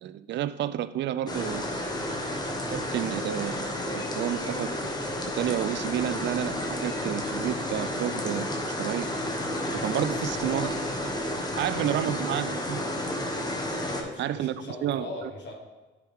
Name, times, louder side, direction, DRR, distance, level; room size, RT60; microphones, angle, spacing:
voice 1, 0.0-1.8 2.1-2.2 2.7-4.9 5.3-8.5 8.8-9.1 9.8-10.7 11.6-12.8 14.2-15.3, right 11 dB, 65° right, 14 dB, 0.4 m, -30 dB
sound 1, 1.3-14.0, left 1 dB, 20° left, 1.1 m, -31 dB
voice 2, 9.9-10.8 11.3-12.8 13.8-15.5, left 1 dB, 65° left, 0 dB, 1.7 m, -41 dB
10.0 x 4.7 x 3.5 m, 1.2 s
cardioid pair, 90°, 20 cm